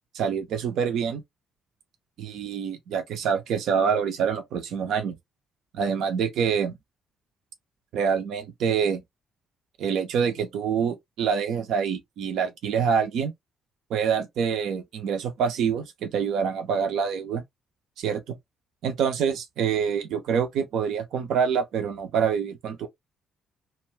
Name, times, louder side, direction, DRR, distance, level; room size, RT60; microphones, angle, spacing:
voice 1, 0.1-1.2 2.2-5.2 5.7-6.8 7.9-9.0 9.8-13.3 13.9-17.4 18.0-18.3 18.8-22.9, right 7 dB, 60° right, 0.5 m, -26 dB
2.5 x 2.2 x 3.1 m
figure-of-eight pair, 45°, 0 cm